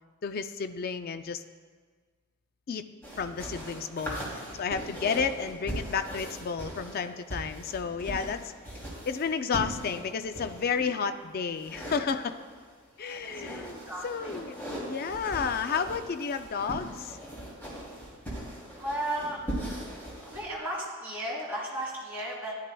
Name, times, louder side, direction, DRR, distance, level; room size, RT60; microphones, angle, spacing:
voice 1, 0.2-1.4 2.7-2.9 3.2-8.5 9.0-12.4 13.0-13.8 14.0-17.2, left 6 dB, 40° left, 10 dB, 0.4 m, -32 dB
sound 1, 3.0-10.9 11.5-12.6 13.0-20.4, right 1 dB, 10° left, 2.8 m, -39 dB
voice 2, 13.0-14.1 18.7-19.4 20.2-22.5, right 1 dB, 10° right, -7 dB, 2.7 m, -35 dB
14.0 x 10.5 x 2.3 m, 1.5 s
head